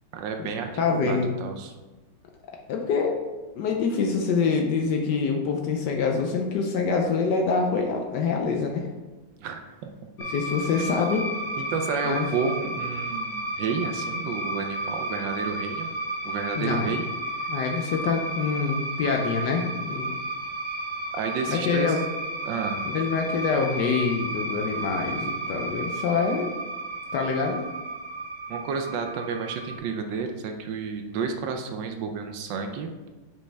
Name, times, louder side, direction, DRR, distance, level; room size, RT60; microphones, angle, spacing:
voice 1, 0.1-1.7 9.4-9.7 11.6-15.9 16.2-17.1 21.1-22.0 22.4-22.8 28.5-33.1, right 5 dB, 75° right, 5 dB, 1.2 m, -31 dB
voice 2, 0.8-1.3 2.7-3.2 3.6-8.9 10.3-11.3 12.0-12.3 16.6-16.9 17.5-20.1 21.5-22.0 22.9-26.5 27.1-27.6, left 5 dB, 70° left, 2 dB, 1.1 m, -25 dB
sound 1, 10.2-29.8, right 1 dB, 55° left, 2.1 m, -33 dB
5.4 x 5.2 x 3.3 m, 1.2 s
omnidirectional pair, 2.2 m